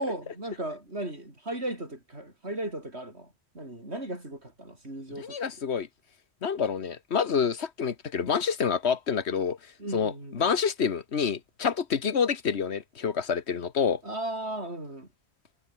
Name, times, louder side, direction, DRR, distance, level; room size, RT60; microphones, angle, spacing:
voice 1, 0.0-5.4 9.8-10.5 14.0-15.1, right 1 dB, 90° right, 7.9 m, -36 dB
voice 2, 5.1-5.9 6.4-9.6 9.9-14.0, left 6 dB, 85° left, 1.6 m, -27 dB
omnidirectional pair, 1.1 m